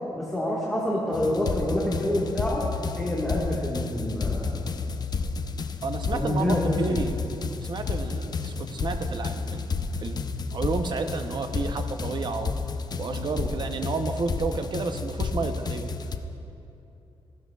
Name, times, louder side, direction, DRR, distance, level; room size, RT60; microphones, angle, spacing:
voice 1, 0.1-2.6 3.0-4.6 6.1-7.0, left 1 dB, 5° left, -6 dB, 1.6 m, -27 dB
sound 1, 1.1-16.2, left 4 dB, 40° left, 0.5 m, -31 dB
voice 2, 5.8-7.1 7.6-9.7 10.0-10.2 10.5-12.5 13.0-15.9, right 4 dB, 45° right, 7 dB, 0.7 m, -31 dB
16.0 x 12.5 x 2.4 m, 2.9 s
cardioid pair, 100°, 10 cm